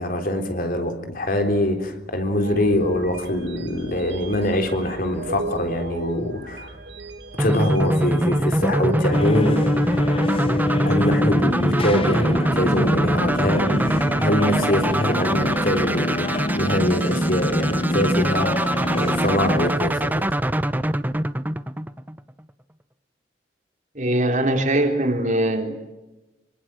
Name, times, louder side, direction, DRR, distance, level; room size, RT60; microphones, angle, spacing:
voice 1, 0.0-6.8 7.4-9.6 10.8-20.3, left 1 dB, 55° left, 3.6 m, -24 dB
sound 1, 2.4-10.0, right 2 dB, 75° right, 2.2 m, -35 dB
sound 2, 7.4-22.3, right 1 dB, 10° right, 0.8 m, -23 dB
sound 3, 9.1-19.7, left 1 dB, 30° left, 0.9 m, -26 dB
voice 2, 23.9-25.9, right 1 dB, 45° right, 3.8 m, -22 dB
25.0 x 25.0 x 7.7 m
head